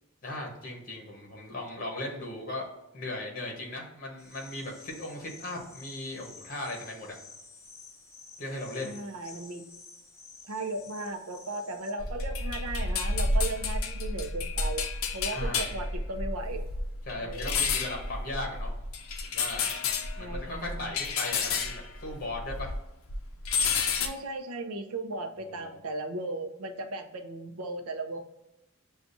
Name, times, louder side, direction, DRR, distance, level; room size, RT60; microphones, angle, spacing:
voice 1, 0.2-7.2 8.4-9.0 15.3-15.7 17.1-18.7 19.2-19.6 20.2-22.7 25.6-25.8, left 2 dB, 40° left, 0 dB, 1.2 m, -37 dB
sound 1, 4.2-11.9, left 4 dB, 15° left, 0.7 m, -51 dB
voice 2, 8.8-9.6 10.5-14.8 15.1-16.6 17.2-17.7 20.2-20.9 23.9-28.2, right 2 dB, 90° right, 5 dB, 0.6 m, -36 dB
sound 2, 12.0-22.8 23.1-24.1, left 4 dB, 75° left, 0.5 m, -30 dB
7.0 x 2.4 x 2.7 m, 0.89 s
head